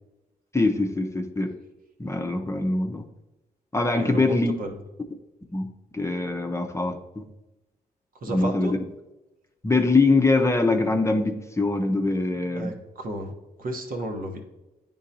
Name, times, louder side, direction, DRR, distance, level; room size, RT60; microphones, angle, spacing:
voice 1, 0.5-1.5 2.0-3.1 3.7-4.5 5.5-7.3 8.3-8.8 9.6-12.7, left 3 dB, 15° left, 4 dB, 0.7 m, -23 dB
voice 2, 4.0-4.7 8.2-8.8 12.5-14.4, right 1 dB, 55° right, 2 dB, 1.1 m, -33 dB
9.6 x 3.8 x 2.8 m, 1.0 s
supercardioid pair, 55°, 17 cm